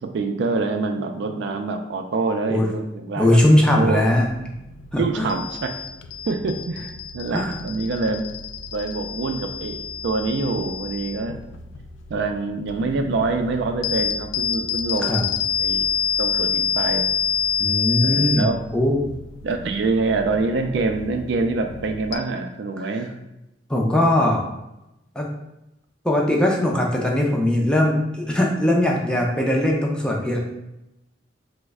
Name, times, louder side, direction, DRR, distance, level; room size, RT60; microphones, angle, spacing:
voice 1, 0.0-3.4 3.7-4.0 5.0-5.7 6.3-8.2 8.7-9.8 10.0-11.4 12.1-15.9 16.2-17.1 18.0-18.6 19.4-23.1, right 3 dB, 65° right, 5 dB, 0.3 m, -25 dB
voice 2, 3.2-4.3 4.9-5.3 7.3-7.5 15.0-15.2 17.6-19.0 23.7-24.4 25.2-25.3 26.0-30.4, left 1 dB, 5° left, -1 dB, 0.4 m, -20 dB
sound 1, 4.0-22.2, left 7 dB, 90° left, 0.3 m, -28 dB
3.1 x 2.0 x 3.4 m, 0.90 s
head